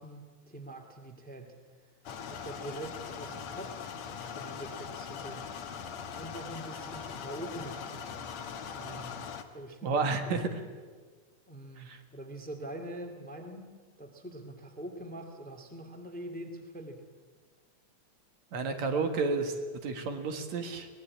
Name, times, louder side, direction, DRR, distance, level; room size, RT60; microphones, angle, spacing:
voice 1, 0.0-1.6 2.2-3.8 4.2-5.9 6.1-8.3 8.7-9.3 9.5-10.3 11.5-13.7 14.0-17.1, right 1 dB, 5° left, 4 dB, 1.8 m, -44 dB
sound 1, 2.1-9.4, left 7 dB, 70° left, 2.5 m, -41 dB
voice 2, 9.8-10.5 11.8-12.0 18.5-19.6 19.8-20.9, right 4 dB, 70° right, 6 dB, 2.9 m, -31 dB
24.0 x 19.0 x 8.6 m, 1.5 s
omnidirectional pair, 3.3 m